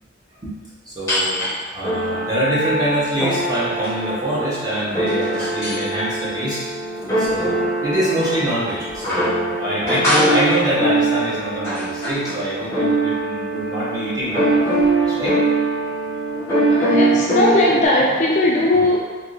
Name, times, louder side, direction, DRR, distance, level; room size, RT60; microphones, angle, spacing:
voice 1, 0.9-1.4 1.7-6.7 7.2-15.4, right 1 dB, 20° right, -8 dB, 0.8 m, -24 dB
sound 1, 1.1-1.5 1.8-17.9, right 1 dB, 15° left, 0.8 m, -22 dB
voice 2, 16.7-19.0, left 1 dB, 40° left, -3 dB, 0.3 m, -18 dB
3.5 x 2.6 x 2.4 m, 1.5 s
head